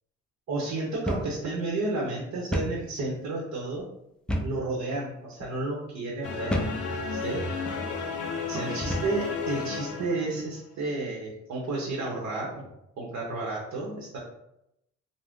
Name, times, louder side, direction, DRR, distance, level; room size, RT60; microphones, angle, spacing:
voice 1, 0.5-3.9 4.4-6.7 7.1-7.4 8.5-12.7 13.0-14.2, right 2 dB, 70° right, -2 dB, 0.8 m, -32 dB
sound 1, 1.1-1.4 1.7-1.8 2.5-2.8 4.3-4.6 5.3-5.5 6.5-6.8 7.6-7.8 8.8-9.2, equal, 5° left, 0.3 m, -30 dB
sound 2, 6.2-10.6, left 5 dB, 85° left, 0.6 m, -33 dB
2.5 x 2.1 x 3.5 m, 0.82 s
cardioid pair, 90°, 30 cm